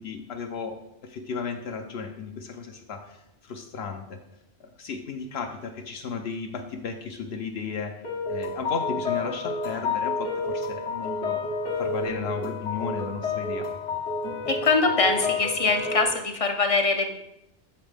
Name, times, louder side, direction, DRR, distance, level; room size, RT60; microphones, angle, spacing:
voice 1, 0.0-3.2 3.4-4.2 4.6-8.0 8.3-11.4 11.8-13.7, left 5 dB, 65° left, 5 dB, 0.8 m, -34 dB
sound 1, 8.0-16.1, left 4 dB, 80° left, 1.6 m, -30 dB
voice 2, 14.5-17.1, left 3 dB, 45° left, 6 dB, 0.5 m, -23 dB
7.0 x 5.8 x 3.3 m, 0.85 s
omnidirectional pair, 1.2 m